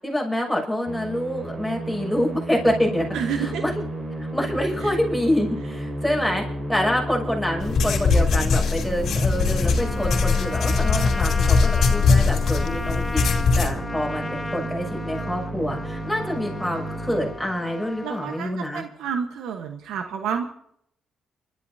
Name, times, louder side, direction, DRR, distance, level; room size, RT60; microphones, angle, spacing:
voice 1, 0.0-3.7 4.2-18.8, equal, ahead, 1 dB, 6.6 m, -26 dB
Musical instrument, 0.9-18.0, right 1 dB, 40° right, 6.7 m, -33 dB
voice 2, 3.1-3.6 4.8-4.9 18.0-20.5, right 7 dB, 85° right, 5 dB, 1.2 m, -29 dB
sound 1, 7.6-13.7, left 4 dB, 65° left, 2.4 m, -21 dB
Trumpet, 9.8-18.5, left 3 dB, 20° left, 0.9 m, -35 dB
29.5 x 13.0 x 2.8 m, 0.70 s
cardioid pair, 90°, 0 cm